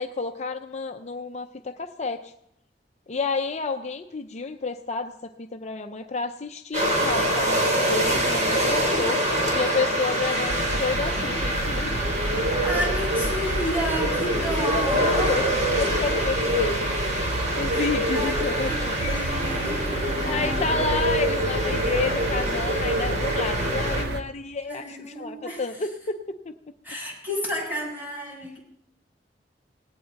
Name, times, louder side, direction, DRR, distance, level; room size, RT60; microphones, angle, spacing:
voice 1, 0.0-2.3 3.1-9.2 9.5-11.9 14.6-16.9 17.6-19.0 20.3-26.4, left 4 dB, 40° left, 7 dB, 0.6 m, -30 dB
sound 1, 6.7-24.0, equal, 40° right, 4.0 m, -25 dB
sound 2, 10.5-24.2, right 2 dB, 60° right, 0.7 m, -31 dB
voice 2, 12.6-15.4 17.7-20.8 24.6-25.9 26.8-28.6, equal, 10° right, -3 dB, 7.6 m, -32 dB
18.5 x 17.5 x 4.1 m, 0.76 s
head